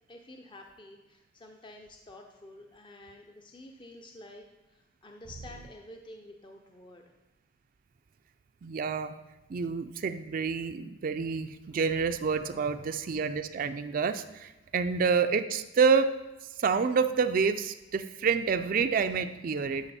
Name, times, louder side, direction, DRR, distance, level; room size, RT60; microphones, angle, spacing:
voice 1, 0.1-7.0, left 1 dB, 25° left, 2 dB, 0.6 m, -50 dB
voice 2, 8.6-9.1 9.5-16.1 16.6-19.9, right 5 dB, 50° right, 9 dB, 0.4 m, -28 dB
12.0 x 5.3 x 4.2 m, 1.0 s
head